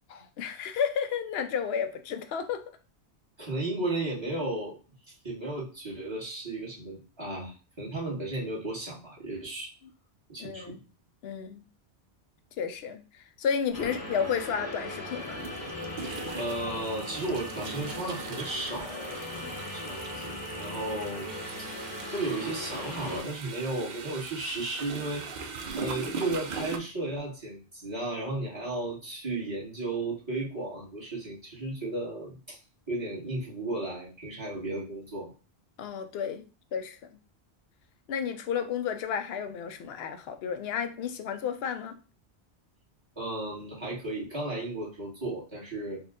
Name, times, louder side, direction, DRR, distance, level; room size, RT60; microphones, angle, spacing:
voice 1, 0.1-2.6 10.4-10.8 11.2-11.6 12.6-13.0 13.4-15.5 19.3-19.5 35.8-36.5 36.7-37.1 38.1-42.0, left 7 dB, 70° left, 0.8 m, -32 dB
voice 2, 3.4-4.8 5.2-9.7 10.3-10.8 13.8-13.9 16.3-19.2 19.7-21.3 22.1-25.3 25.7-32.6 32.9-35.3 43.1-46.0, right 2 dB, 25° right, 1.6 m, -34 dB
sound 1, 13.7-23.2, left 1 dB, 20° left, 1.0 m, -39 dB
sound 2, 13.8-13.9 15.2-26.8, right 4 dB, 55° right, 0.5 m, -40 dB
4.3 x 2.4 x 3.6 m
omnidirectional pair, 1.1 m